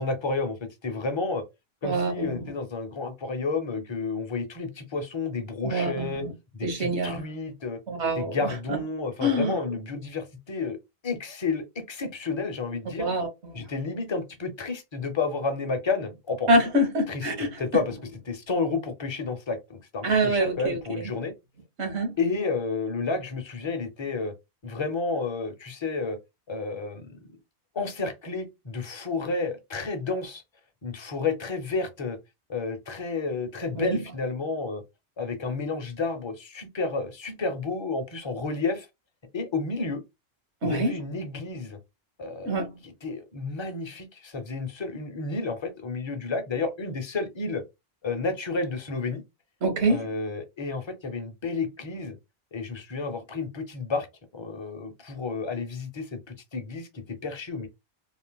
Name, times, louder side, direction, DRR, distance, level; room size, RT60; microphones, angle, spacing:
voice 1, 0.0-1.4 1.8-6.2 6.5-7.8 8.1-10.8 11.0-13.1 13.5-16.5 17.1-17.3 17.6-18.0 18.3-21.3 22.2-24.3 24.6-26.2 26.5-27.2 27.7-30.4 30.8-32.2 32.5-34.8 35.2-38.9 39.3-40.0 40.6-41.8 42.2-42.6 43.0-47.6 48.0-49.2 49.9-52.2 52.5-54.1 54.3-57.7, left 4 dB, 35° left, 0.5 m, -31 dB
voice 2, 1.8-2.4 5.6-6.3 6.6-7.2 7.9-8.4 8.7-8.8 9.2-9.6 13.0-13.7 16.5-17.6 20.0-21.1 21.8-22.1 33.7-34.0 40.6-40.9 42.4-42.7 49.6-50.0, right 1 dB, 75° right, 1.4 m, -25 dB
3.2 x 2.5 x 2.2 m
omnidirectional pair, 1.1 m